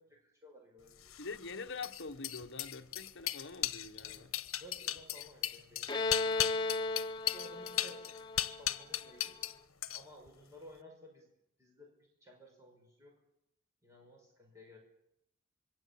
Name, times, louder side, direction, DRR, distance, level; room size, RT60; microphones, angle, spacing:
voice 1, 0.0-1.2 4.0-6.3 7.2-9.3 9.9-11.3 11.6-13.2 13.8-14.8, equal, 15° right, 6.0 m, -56 dB
sound 1, 1.0-9.5 9.8-10.3, left 12 dB, 75° left, 1.3 m, -36 dB
voice 2, 1.2-4.3, left 4 dB, 55° left, 1.3 m, -45 dB
Bowed string instrument, 5.9-9.4, left 3 dB, 20° left, 1.0 m, -36 dB
25.5 x 22.5 x 8.7 m
head